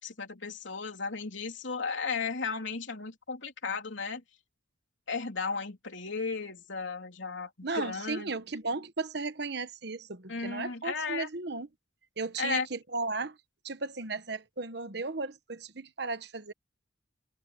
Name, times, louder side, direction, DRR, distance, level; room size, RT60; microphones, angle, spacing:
voice 1, 0.0-4.2 5.1-8.3 10.3-11.3 12.4-12.7, left 4 dB, 70° left, 3.2 m, -35 dB
voice 2, 7.6-11.7 12.2-13.4 13.6-16.5, right 3 dB, 55° right, 1.2 m, -35 dB
head